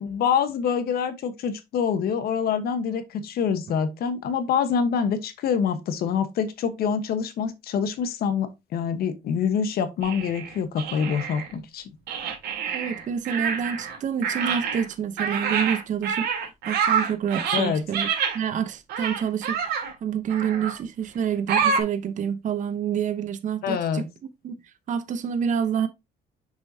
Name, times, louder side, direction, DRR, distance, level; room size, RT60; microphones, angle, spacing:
voice 1, 0.0-11.9 17.5-17.8 23.6-24.1, left 7 dB, 65° left, 1.1 m, -26 dB
sound 1, 10.0-11.5 12.1-14.0 14.2-18.4 18.9-19.9 20.3-20.8 21.5-21.8, right 6 dB, 75° right, 2.4 m, -27 dB
voice 2, 12.7-18.1 18.3-24.0 24.4-24.5 24.9-25.9, right 8 dB, 45° right, 0.8 m, -28 dB
6.7 x 5.5 x 2.7 m
cardioid pair, 110°, 17 cm